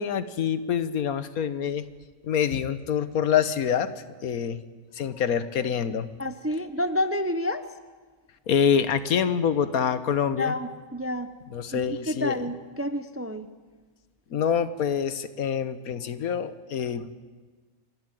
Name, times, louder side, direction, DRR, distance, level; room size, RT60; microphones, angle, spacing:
voice 1, 0.0-1.9 2.2-3.9 4.2-4.6 4.9-6.1 8.5-10.5 11.5-12.4 14.3-17.1, left 8 dB, 80° left, 13 dB, 1.5 m, -26 dB
voice 2, 6.2-7.7 10.4-11.3 11.7-13.5, left 1 dB, 15° right, 10 dB, 0.5 m, -29 dB
26.5 x 14.5 x 9.1 m, 1.4 s
omnidirectional pair, 1.5 m